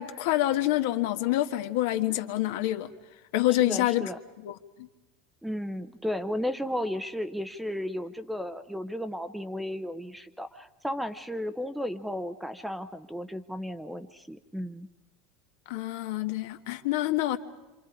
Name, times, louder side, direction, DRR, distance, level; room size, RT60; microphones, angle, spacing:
voice 1, 0.0-2.9 3.3-4.1 4.4-4.9 15.7-17.4, left 15 dB, 70° left, 1.4 m, -27 dB
voice 2, 3.6-4.2 5.4-14.9, left 1 dB, ahead, 0.7 m, -34 dB
27.0 x 26.5 x 5.0 m
supercardioid pair, 155°, 0 cm